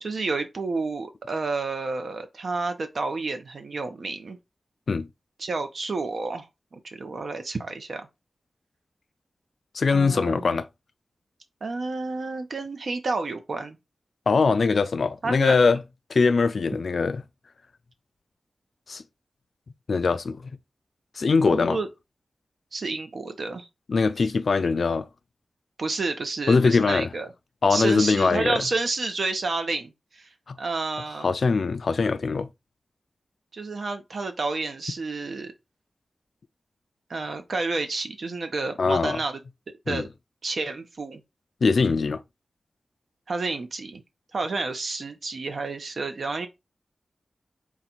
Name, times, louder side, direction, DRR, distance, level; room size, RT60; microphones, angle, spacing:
voice 1, 0.0-4.4 5.4-8.0 9.9-10.6 11.6-13.8 15.2-15.6 21.5-21.9 22.7-23.7 25.8-27.3 27.7-30.3 30.6-31.3 33.5-35.5 37.1-39.4 39.9-40.1 40.4-41.2 43.3-44.0 44.3-46.5, right 3 dB, 65° right, 0.8 m, -30 dB
voice 2, 9.7-10.7 14.3-15.8 16.1-17.2 18.9-19.0 19.9-20.5 21.2-21.8 23.9-25.1 26.5-27.1 27.6-28.7 30.5-30.6 31.2-32.5 38.8-39.2 39.9-40.0 41.6-42.2, left 4 dB, 65° left, 0.3 m, -22 dB
4.0 x 2.4 x 4.3 m
wide cardioid pair, 120°, 0 cm